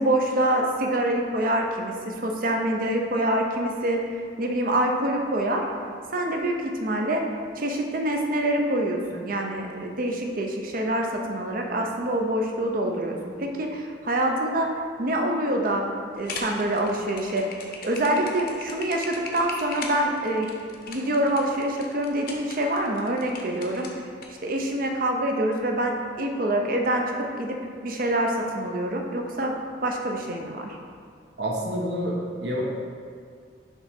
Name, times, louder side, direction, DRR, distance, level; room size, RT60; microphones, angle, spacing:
voice 1, 0.0-5.7 6.1-7.2 7.6-14.7 15.0-15.8 16.1-17.4 17.8-20.5 20.9-23.9 24.4-29.6 29.8-30.8, right 1 dB, 50° right, 2 dB, 0.6 m, -26 dB
sound 1, 16.1-24.3, left 4 dB, 50° left, 0.7 m, -39 dB
voice 2, 31.4-32.6, equal, 65° right, -3 dB, 1.1 m, -28 dB
6.4 x 3.2 x 5.0 m, 2.2 s
head